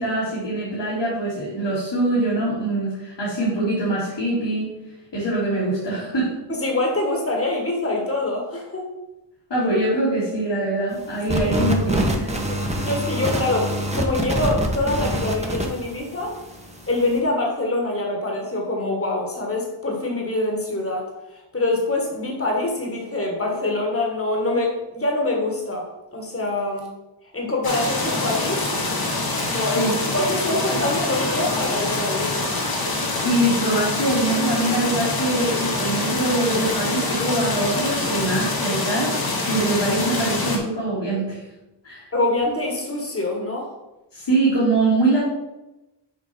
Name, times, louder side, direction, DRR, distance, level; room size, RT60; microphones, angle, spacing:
voice 1, 0.0-4.7 5.1-6.4 9.5-12.4 29.8-30.0 33.0-41.4 41.8-42.0 44.1-45.2, right 2 dB, 70° left, -8 dB, 2.3 m, -23 dB
voice 2, 6.6-8.9 11.4-11.5 12.5-16.4 16.9-25.9 26.1-26.9 27.3-28.7 29.5-32.3 42.1-43.7, left 2 dB, 30° left, 0 dB, 1.5 m, -25 dB
sound 1, 11.3-17.2, right 1 dB, 15° right, 1.0 m, -25 dB
sound 2, 27.6-40.6, left 2 dB, 55° left, 1.4 m, -25 dB
6.8 x 4.9 x 4.2 m, 0.99 s
wide cardioid pair, 80°, 44 cm